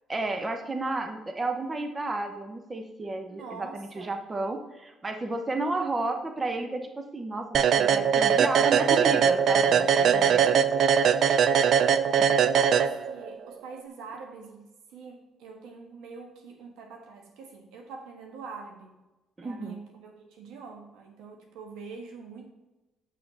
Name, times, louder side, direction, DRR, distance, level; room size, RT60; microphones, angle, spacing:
voice 1, 0.1-10.6 12.2-12.3 19.4-19.8, right 2 dB, 30° right, 5 dB, 0.9 m, -32 dB
voice 2, 3.3-4.1 10.6-11.8 12.3-14.7 14.9-18.9 19.4-22.5, right 4 dB, 80° right, 2 dB, 1.4 m, -44 dB
sound 1, 7.5-13.3, right 7 dB, 65° right, 0.4 m, -21 dB
7.4 x 5.7 x 4.1 m, 1.0 s
supercardioid pair, 60°, 0 cm